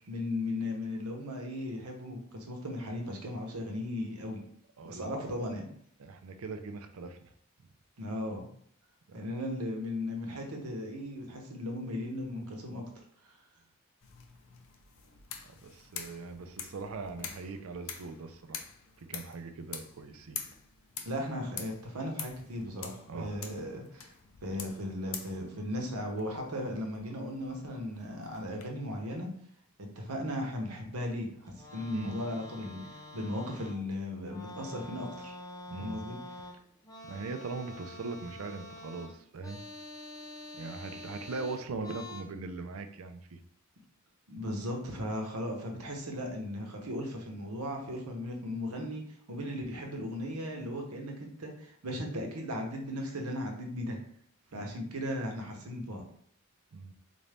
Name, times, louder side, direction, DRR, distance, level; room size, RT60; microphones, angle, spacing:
voice 1, 0.1-4.4 4.8-5.7 8.0-8.5 9.1-12.9 13.2-13.3 21.0-24.1 24.4-29.3 29.8-35.3 35.8-36.2 44.3-54.0 54.5-56.0, left 1 dB, 90° right, 1 dB, 0.9 m, -37 dB
voice 2, 4.8-5.1 6.0-7.3 9.1-9.3 15.6-18.6 19.0-20.4 23.1-23.4 31.9-32.1 35.7-36.0 37.1-39.6 40.6-43.4 54.5-54.7 56.7-56.9, right 3 dB, 65° right, 8 dB, 0.5 m, -40 dB
sound 1, 14.0-28.7, left 7 dB, 65° left, 0.5 m, -46 dB
sound 2, 31.5-33.9 34.2-42.2, left 1 dB, 15° left, 0.5 m, -46 dB
4.0 x 2.6 x 3.4 m, 0.63 s
head